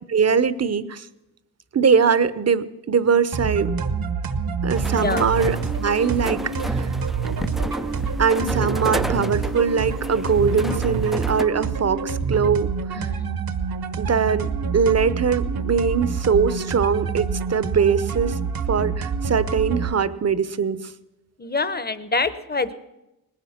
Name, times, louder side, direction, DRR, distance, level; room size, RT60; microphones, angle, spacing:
voice 1, 0.1-1.1 1.7-3.7 4.6-6.9 8.2-13.1 14.0-18.4 18.7-20.9, right 6 dB, 40° right, 16 dB, 0.9 m, -22 dB
sound 1, 3.3-19.9, right 5 dB, 65° right, 1.2 m, -27 dB
sound 2, 4.7-11.4, equal, ahead, 0.5 m, -32 dB
voice 2, 12.9-13.4 21.4-22.7, left 3 dB, 25° left, 14 dB, 1.1 m, -26 dB
19.0 x 10.5 x 7.3 m, 0.95 s
cardioid pair, 60°, 38 cm